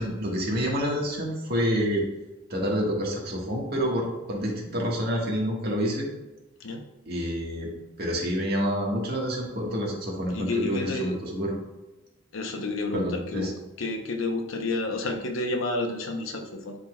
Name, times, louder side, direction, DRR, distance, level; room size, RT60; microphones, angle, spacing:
voice 1, 0.0-2.0 2.5-6.1 7.1-7.7 8.0-11.6 12.9-13.5, equal, 55° right, -2 dB, 1.5 m, -28 dB
voice 2, 10.3-11.2 12.3-13.5 13.8-16.7, left 2 dB, 85° left, 3 dB, 0.8 m, -30 dB
11.0 x 3.9 x 2.3 m, 1.0 s
head